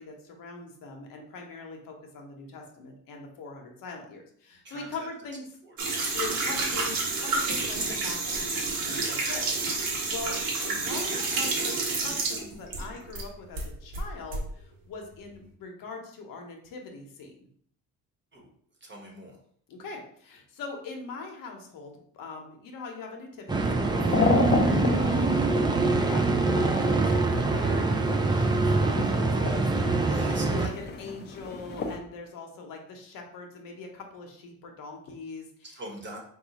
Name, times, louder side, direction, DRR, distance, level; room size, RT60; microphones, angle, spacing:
voice 1, 0.0-5.4 6.1-9.8 10.1-10.4 10.6-17.3 19.7-25.4 26.0-35.5, left 3 dB, 70° left, 2 dB, 0.9 m, -42 dB
voice 2, 4.6-5.1 5.6-5.8 18.3-18.5 18.8-19.4 30.1-30.7 35.6-36.2, right 1 dB, 30° right, 0 dB, 1.1 m, -43 dB
sound 1, 5.8-13.3 13.6-14.4, right 3 dB, 80° right, 1.1 m, -29 dB
sound 2, 23.5-30.7, right 3 dB, 15° right, 0.3 m, -24 dB
sound 3, 23.8-32.0, left 4 dB, 30° left, 0.6 m, -32 dB
3.6 x 2.4 x 4.0 m, 0.63 s
cardioid pair, 120°, 34 cm